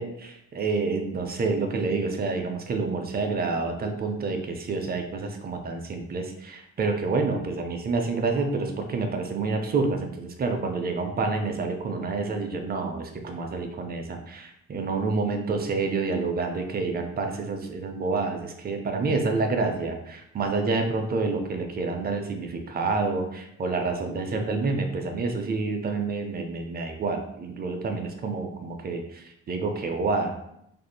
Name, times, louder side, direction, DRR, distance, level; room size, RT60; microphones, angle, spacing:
voice 1, 0.0-30.3, right 3 dB, 30° right, 4 dB, 0.4 m, -28 dB
3.0 x 2.6 x 2.2 m, 0.77 s
cardioid pair, 90°, 30 cm